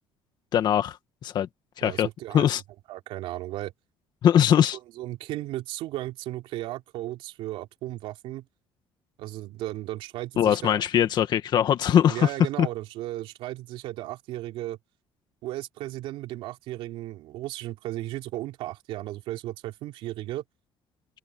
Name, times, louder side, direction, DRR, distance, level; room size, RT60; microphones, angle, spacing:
voice 1, 0.5-1.0 1.2-1.5 1.8-2.1 2.3-2.6 4.2-4.8 10.4-12.3 12.6-12.7, left 10 dB, 50° left, 1.8 m, -21 dB
voice 2, 1.8-2.5 2.9-3.7 5.0-8.4 9.2-10.8 12.1-14.8 15.4-20.4, right 15 dB, 80° right, 3.2 m, -35 dB
open air
cardioid pair, 130°, 9 cm